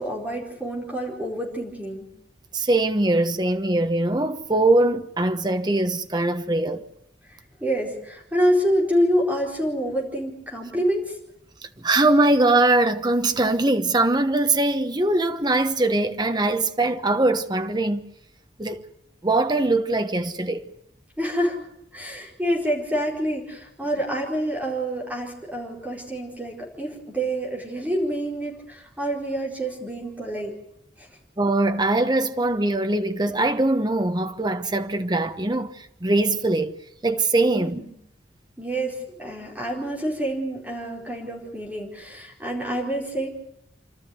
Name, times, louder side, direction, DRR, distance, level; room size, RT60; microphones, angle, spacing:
voice 1, 0.0-2.1 7.3-11.2 21.2-21.7 21.9-30.5 31.0-31.1 37.5-37.9 38.6-43.3, equal, 10° right, 4.5 m, -27 dB
voice 2, 2.5-6.8 11.6-18.0 18.6-18.8 19.2-20.7 31.4-36.7 37.0-37.8, right 2 dB, 25° right, 1.1 m, -22 dB
28.0 x 13.0 x 9.5 m
head